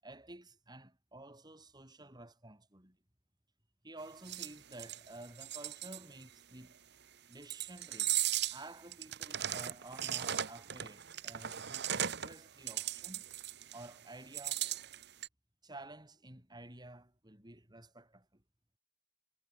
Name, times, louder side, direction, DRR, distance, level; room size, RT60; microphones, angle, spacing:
voice 1, 0.0-3.0 3.8-6.8 7.3-13.3 13.7-14.7 15.6-18.4, right 2 dB, 20° right, 6.1 m, -52 dB
sound 1, 4.3-6.0 7.4-8.6 8.9-12.4 12.7-13.9 14.3-15.3, right 11 dB, 60° right, 1.3 m, -37 dB
head